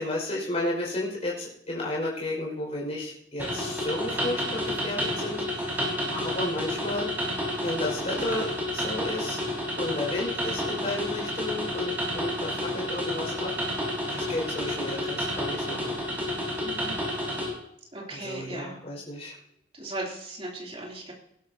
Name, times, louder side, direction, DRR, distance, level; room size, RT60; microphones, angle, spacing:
voice 1, 0.0-7.1 7.6-8.5 8.7-9.4 9.8-13.5 14.1-15.9 18.1-19.3, left 1 dB, 35° left, -4 dB, 5.5 m, -32 dB
sound 1, 3.4-17.5, equal, 10° right, 5.5 m, -30 dB
voice 2, 16.6-17.0 17.9-18.9 19.7-21.1, right 2 dB, 30° right, -2 dB, 3.2 m, -37 dB
19.5 x 11.5 x 2.9 m, 0.74 s
head